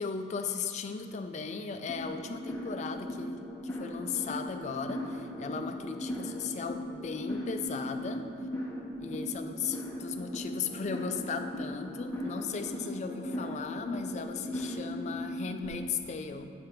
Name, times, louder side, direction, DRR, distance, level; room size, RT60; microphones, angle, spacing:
voice 1, 0.0-8.3 9.0-16.5, left 5 dB, 35° left, 7 dB, 0.3 m, -37 dB
sound 1, 1.9-15.7, left 1 dB, 10° left, 0.7 m, -38 dB
7.7 x 3.3 x 5.7 m, 2.6 s
head